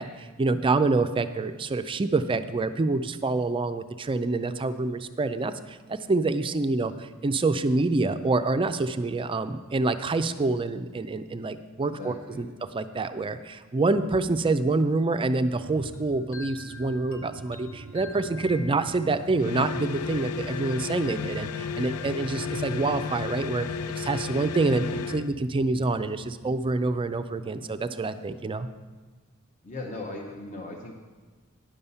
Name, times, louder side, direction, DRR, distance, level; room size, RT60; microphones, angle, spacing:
voice 1, 0.0-12.5 12.7-23.7 24.0-24.8 25.1-28.7, right 3 dB, 25° right, 11 dB, 0.4 m, -26 dB
voice 2, 11.8-12.5 24.6-24.8 29.6-30.9, left 2 dB, 35° left, 1 dB, 0.8 m, -38 dB
sound 1, 15.6-27.8, right 2 dB, 90° right, 0.5 m, -46 dB
sound 2, 15.9-19.4, left 3 dB, 65° left, 1.0 m, -46 dB
sound 3, 19.4-25.3, left 6 dB, 90° left, 0.4 m, -33 dB
10.0 x 7.1 x 5.5 m, 1.4 s
head